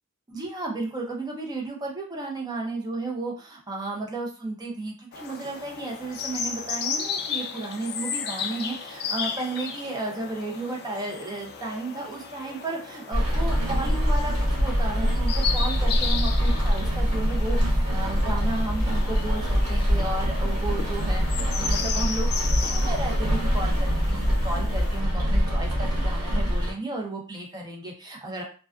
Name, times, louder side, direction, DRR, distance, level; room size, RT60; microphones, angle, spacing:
voice 1, 0.3-22.3 22.6-28.4, right 2 dB, 20° right, -1 dB, 0.5 m, -33 dB
sound 1, 5.1-25.0, left 6 dB, 45° left, 0.3 m, -35 dB
Rain, 13.1-26.7, equal, 75° right, 0.9 m, -24 dB
2.3 x 2.2 x 2.4 m, 0.38 s
head